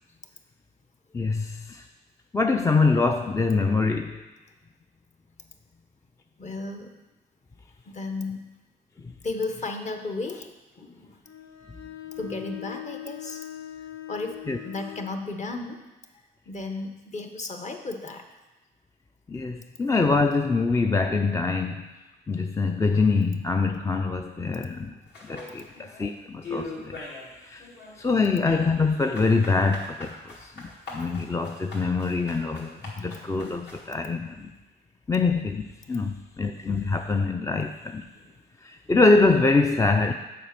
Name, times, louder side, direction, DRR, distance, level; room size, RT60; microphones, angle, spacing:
voice 1, 1.1-1.8 2.3-4.2 14.5-14.6 19.3-21.9 22.3-24.9 25.2-27.1 27.4-27.7 28.0-34.5 35.1-38.1 38.6-40.1, left 3 dB, 15° left, 5 dB, 0.4 m, -24 dB
voice 2, 6.4-6.9 7.9-8.5 9.2-11.2 12.2-13.5 14.1-15.8 16.5-18.3 38.2-38.3, left 3 dB, 35° left, 5 dB, 1.1 m, -34 dB
Bowed string instrument, 11.3-15.2, left 13 dB, 75° left, 0.7 m, -40 dB
sound 1, 25.1-26.1 26.4-27.3 27.6-33.9, left 3 dB, 60° left, 2.4 m, -41 dB
7.4 x 5.1 x 6.7 m, 1.1 s
cardioid pair, 90°, 20 cm